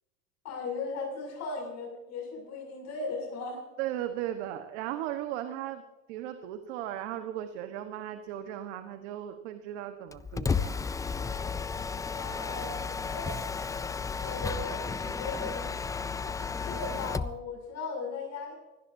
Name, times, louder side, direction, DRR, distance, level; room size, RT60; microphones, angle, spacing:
voice 1, 0.4-3.6 12.1-13.4 14.2-15.7 16.6-18.5, left 3 dB, 50° left, -1 dB, 7.1 m, -37 dB
voice 2, 3.8-5.8 6.1-10.7, right 12 dB, 75° right, 7 dB, 1.4 m, -36 dB
Mechanisms, 10.1-17.4, left 5 dB, 10° left, 0.4 m, -33 dB
24.5 x 18.0 x 2.8 m, 1.1 s
supercardioid pair, 115°, 36 cm